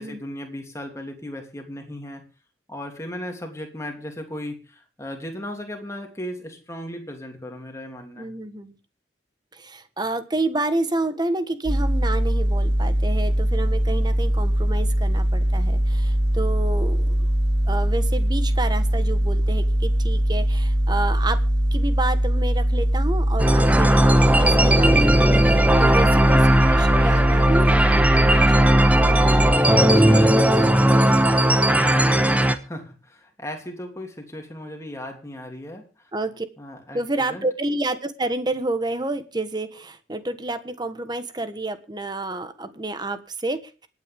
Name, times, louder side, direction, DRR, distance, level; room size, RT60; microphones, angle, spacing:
voice 1, 0.0-2.2 2.7-8.3 29.2-31.4 31.7-35.9 36.6-37.5, left 1 dB, 15° left, 3 dB, 3.0 m, -36 dB
voice 2, 8.2-8.7 9.5-17.3 17.7-21.4 21.7-29.1 36.1-36.4 36.9-43.9, right 2 dB, 25° right, 11 dB, 1.3 m, -29 dB
sound 1, 11.6-29.6, equal, 80° right, 2.7 m, -21 dB
sound 2, 23.4-32.6, right 1 dB, 10° right, 1.1 m, -17 dB
25.5 x 9.3 x 3.6 m, 0.33 s
head